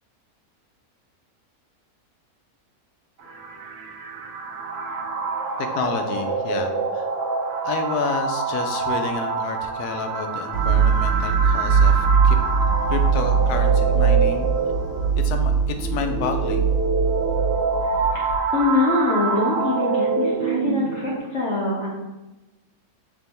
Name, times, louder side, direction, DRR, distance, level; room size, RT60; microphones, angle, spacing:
sound 1, 3.2-21.2, right 4 dB, 60° right, 0.7 m, -26 dB
voice 1, 5.6-7.1 7.6-12.4 12.9-14.5 15.2-16.7, left 5 dB, 85° left, 5 dB, 1.1 m, -30 dB
sound 2, 10.5-18.4, right 6 dB, 75° right, 1.1 m, -21 dB
voice 2, 17.8-21.9, left 3 dB, 60° left, -4 dB, 0.9 m, -24 dB
3.5 x 2.9 x 4.0 m, 1.0 s
omnidirectional pair, 1.6 m